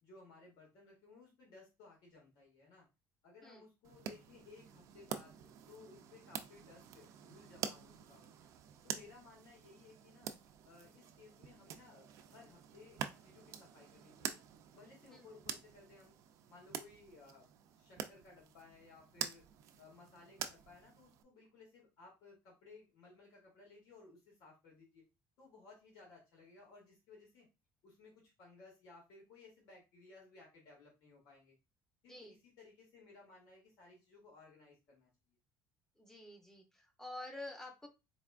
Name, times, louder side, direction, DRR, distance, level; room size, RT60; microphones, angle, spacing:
voice 1, 0.0-2.9 3.2-8.5 8.8-10.3 10.6-14.4 14.7-16.2 16.5-19.4 19.8-25.0 25.4-27.5 27.8-31.6 32.0-35.4, left 3 dB, 70° left, -2 dB, 2.0 m, -60 dB
sound 1, 3.8-21.2, right 9 dB, 50° right, 0.4 m, -47 dB
voice 2, 36.0-37.9, left 1 dB, 5° left, 4 dB, 0.7 m, -49 dB
4.1 x 3.4 x 2.4 m, 0.26 s
cardioid pair, 165°, 7 cm